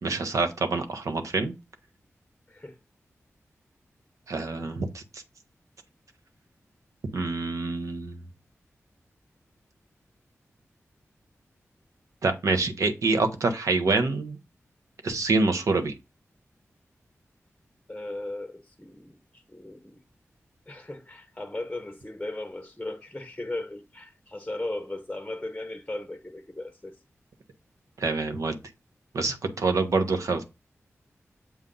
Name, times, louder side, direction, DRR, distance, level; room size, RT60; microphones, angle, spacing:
voice 1, 0.0-1.5 4.3-5.2 7.1-8.2 12.2-14.4 15.0-15.9 28.0-28.6 29.1-30.4, right 3 dB, 85° right, 1.0 m, -26 dB
voice 2, 17.9-20.0 20.7-26.9, left 2 dB, 15° left, 0.8 m, -37 dB
7.2 x 2.4 x 5.3 m
wide cardioid pair, 70°, 5 cm